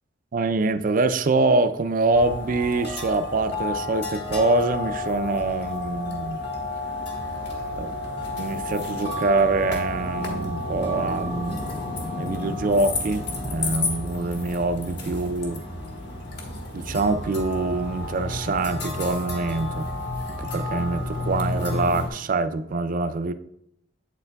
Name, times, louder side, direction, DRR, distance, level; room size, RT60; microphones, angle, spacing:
voice 1, 0.3-6.4 7.8-7.9 8.4-11.7 12.2-15.6 16.7-19.9 20.3-23.3, right 3 dB, 50° right, 12 dB, 0.4 m, -25 dB
sound 1, 2.1-22.1, left 2 dB, 65° left, 1.5 m, -31 dB
8.1 x 8.1 x 2.3 m, 0.75 s
head